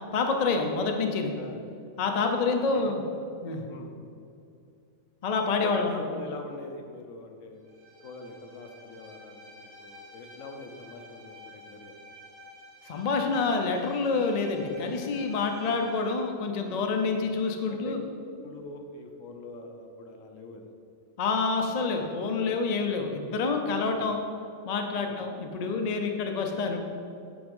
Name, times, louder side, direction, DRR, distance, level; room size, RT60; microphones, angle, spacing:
voice 1, 0.1-1.3 2.0-3.0 3.4-3.6 5.2-6.0 12.9-18.0 21.2-24.2 24.7-26.8, left 4 dB, 50° left, 3 dB, 0.5 m, -27 dB
voice 2, 3.7-4.1 5.6-7.6 8.0-11.9 15.6-15.8 17.1-17.2 17.7-18.0 18.3-20.7 22.9-23.1 23.9-24.1 25.0-25.2, left 3 dB, 75° left, 4 dB, 1.1 m, -43 dB
Bowed string instrument, 7.6-16.3, left 1 dB, 55° right, 2.0 m, -50 dB
8.2 x 3.6 x 5.3 m, 2.4 s
omnidirectional pair, 1.4 m